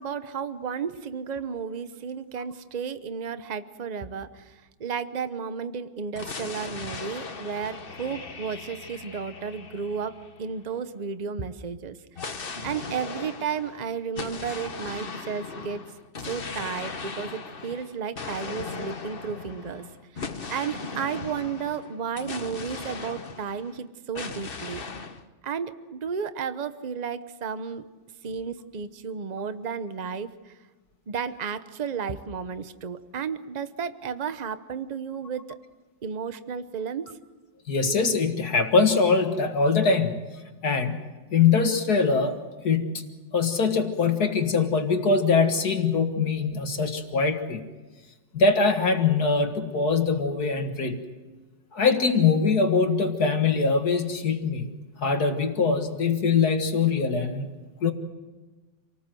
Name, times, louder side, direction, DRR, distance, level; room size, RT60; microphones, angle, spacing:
voice 1, 0.0-12.0 12.2-15.8 16.3-19.9 20.1-24.8 25.4-27.9 28.2-30.6 31.1-35.6 36.0-37.2, right 6 dB, 45° right, 12 dB, 0.5 m, -33 dB
sound 1, 6.1-10.9 12.1-23.8 24.1-25.2, left 4 dB, 35° left, 1.1 m, -38 dB
voice 2, 37.7-40.3 40.6-41.0 41.3-42.4 42.6-43.1 43.3-47.6 48.3-51.0 51.7-54.7 55.0-57.5 57.8-57.9, left 4 dB, 55° left, 5 dB, 2.1 m, -23 dB
27.5 x 19.0 x 7.6 m, 1.2 s
omnidirectional pair, 2.1 m